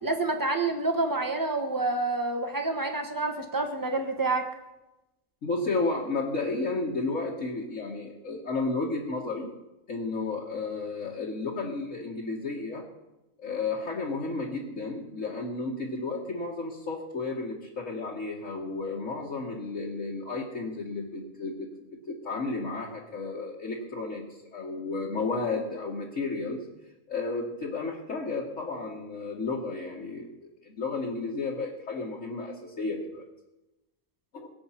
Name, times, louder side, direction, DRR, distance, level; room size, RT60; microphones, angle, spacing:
voice 1, 0.0-4.5, right 2 dB, 15° right, 4 dB, 1.5 m, -28 dB
voice 2, 5.4-9.5 9.9-12.8 13.4-21.7 22.1-24.2 24.5-26.7 27.1-33.2 34.3-34.5, left 3 dB, 65° left, -4 dB, 2.0 m, -32 dB
22.0 x 8.0 x 5.8 m, 0.99 s
omnidirectional pair, 1.4 m